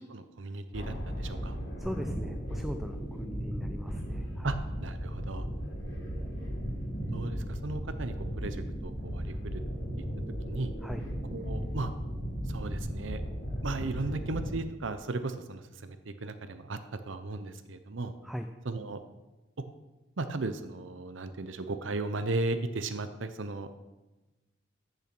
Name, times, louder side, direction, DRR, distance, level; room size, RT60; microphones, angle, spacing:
voice 1, 0.1-1.5 4.4-5.4 7.1-9.6 10.5-10.7 11.3-11.9 12.5-13.2 13.6-16.0 16.2-16.8 17.1-18.1 18.7-19.0 20.2-23.7, right 3 dB, 80° right, 10 dB, 0.8 m, -36 dB
sound 1, 0.7-14.6, equal, 80° left, 3.2 m, -36 dB
voice 2, 1.8-4.5 10.8-11.0 18.2-18.5, equal, ahead, 6 dB, 0.5 m, -39 dB
14.5 x 6.9 x 6.1 m, 1.1 s
head